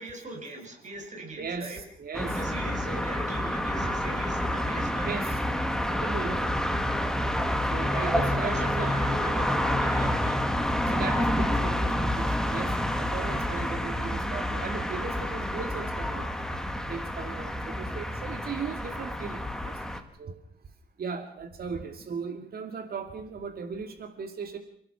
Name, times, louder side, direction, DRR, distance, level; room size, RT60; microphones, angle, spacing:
voice 1, 0.0-1.8 2.2-5.2 7.8-10.5 19.9-20.0, right 2 dB, 40° right, 2 dB, 7.2 m, -40 dB
voice 2, 1.4-3.1 5.0-5.4 5.9-6.5 7.7-9.0 10.9-16.3 16.9-19.8 20.2-20.4 21.0-24.6, right 5 dB, 55° right, 5 dB, 2.4 m, -37 dB
sound 1, 2.1-20.0, left 1 dB, 5° left, 1.9 m, -28 dB
29.0 x 17.5 x 5.9 m, 0.65 s
wide cardioid pair, 135°, 18 cm